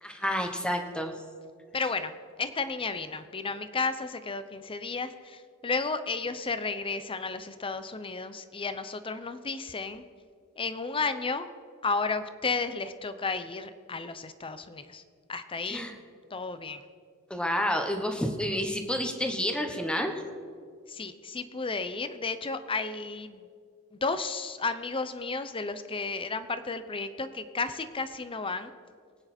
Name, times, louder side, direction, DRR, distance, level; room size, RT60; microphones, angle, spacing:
voice 1, 0.0-1.1 15.7-15.9 17.3-20.1, equal, 5° left, 5 dB, 1.2 m, -29 dB
voice 2, 1.7-10.0 10.6-11.5 11.8-15.0 15.3-15.9 16.3-16.8 20.9-23.4 23.9-28.7, left 4 dB, 25° left, 11 dB, 0.7 m, -33 dB
23.0 x 9.4 x 4.4 m, 2.1 s
head